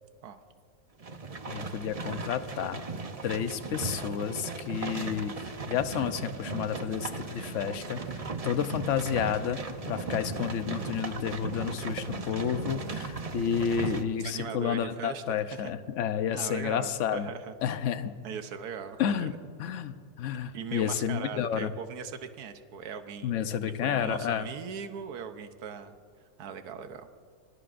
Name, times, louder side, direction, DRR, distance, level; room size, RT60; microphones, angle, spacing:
sound 1, 1.0-14.0, right 3 dB, 35° right, 0.6 m, -37 dB
voice 1, 1.5-2.8 3.2-5.3 5.7-9.6 9.9-17.3 17.6-18.1 19.0-19.3 19.6-21.7 23.2-24.5, left 8 dB, 55° left, 10 dB, 1.0 m, -31 dB
sound 2, 2.4-9.3, right 2 dB, 20° right, 4.5 m, -51 dB
voice 2, 14.1-15.7 16.3-17.5 18.2-19.3 20.5-23.6 23.8-26.0 26.4-27.1, right 7 dB, 75° right, 8 dB, 1.4 m, -39 dB
25.5 x 21.0 x 2.6 m, 2.2 s
omnidirectional pair, 1.7 m